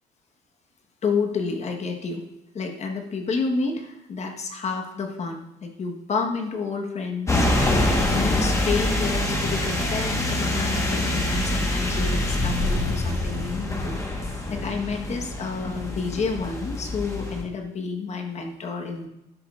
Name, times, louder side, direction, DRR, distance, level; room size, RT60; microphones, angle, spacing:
voice 1, 1.0-2.2 2.5-14.0 14.5-19.1, left 4 dB, 40° left, 4 dB, 1.3 m, -30 dB
sound 1, 7.3-17.4, left 1 dB, 15° left, 1.3 m, -25 dB
12.0 x 6.3 x 2.5 m, 0.93 s
cardioid pair, 110°, 17 cm